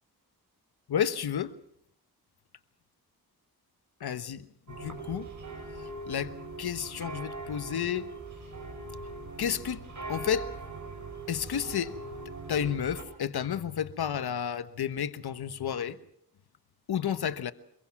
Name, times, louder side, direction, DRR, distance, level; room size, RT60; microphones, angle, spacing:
voice 1, 0.9-1.5 4.0-4.4 4.8-5.3 6.1-6.3 6.6-8.0 9.4-9.8 10.1-10.5 11.3-12.2 12.5-16.0 16.9-17.5, left 8 dB, 75° left, 1.2 m, -31 dB
sound 1, 4.7-13.0, right 3 dB, 50° right, 7.1 m, -41 dB
25.0 x 22.0 x 6.0 m
cardioid pair, 85°, 38 cm